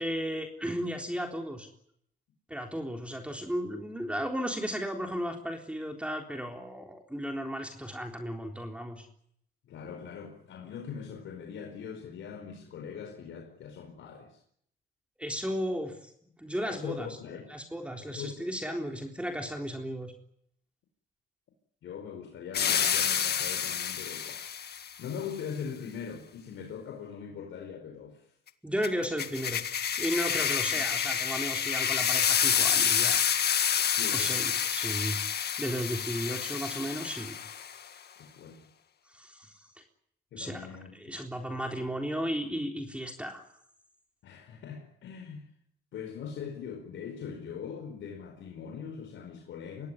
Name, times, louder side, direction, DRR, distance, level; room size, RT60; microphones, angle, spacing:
voice 1, 0.0-1.7 2.5-9.1 15.2-16.1 16.4-17.1 17.5-20.1 28.6-29.6 30.0-33.2 33.6-35.2 35.6-37.4 39.1-39.7 40.4-43.4, equal, 5° right, 3.7 m, -34 dB
voice 2, 9.6-14.4 16.6-17.5 18.0-18.5 21.8-24.4 25.0-28.3 30.3-30.4 30.7-30.8 33.9-34.3 38.2-38.7 40.3-41.2 44.2-45.4 45.9-49.9, left 7 dB, 75° left, 4.7 m, -41 dB
sound 1, 22.5-24.9 28.8-37.8, left 8 dB, 55° left, 1.8 m, -28 dB
24.5 x 18.5 x 9.9 m
cardioid pair, 90°, 20 cm